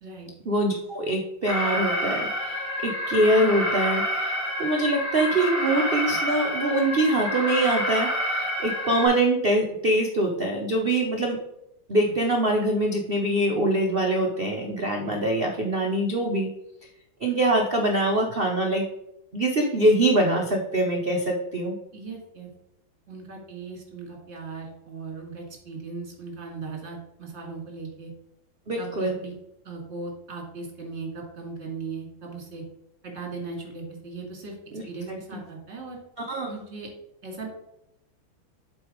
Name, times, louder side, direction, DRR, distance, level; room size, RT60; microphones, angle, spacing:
voice 1, 0.5-11.4 11.9-16.5 17.2-18.8 19.3-21.7 28.7-29.2 34.7-34.8 35.1-35.2 36.3-36.5, right 1 dB, 75° right, 1 dB, 0.5 m, -24 dB
Alarm, 1.5-9.1, equal, 15° right, 3.1 m, -28 dB
voice 2, 21.9-22.5 23.1-28.1 28.8-29.3 29.6-32.6 33.0-34.6 34.9-36.0 36.5-36.9 37.2-37.5, right 4 dB, 30° right, 0 dB, 2.2 m, -38 dB
7.8 x 4.0 x 5.0 m, 0.84 s
omnidirectional pair, 2.3 m